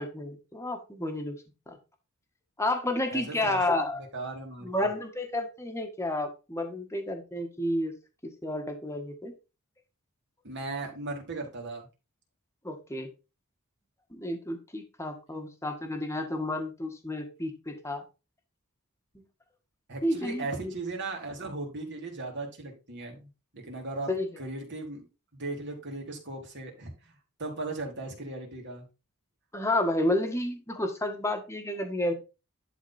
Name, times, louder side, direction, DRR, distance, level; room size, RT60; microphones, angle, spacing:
voice 1, 0.0-1.4 1.7-1.8 2.6-4.0 4.6-7.9 8.4-9.3 12.6-13.1 14.1-18.0 20.0-20.7 24.1-24.3 29.5-32.1, left 1 dB, 15° left, 5 dB, 1.5 m, -31 dB
voice 2, 3.1-3.7 4.1-4.9 10.4-11.9 19.9-24.1 24.4-25.1 25.3-27.1 27.4-28.9, right 2 dB, 55° right, 1 dB, 3.1 m, -37 dB
11.0 x 4.2 x 4.3 m, 0.29 s
head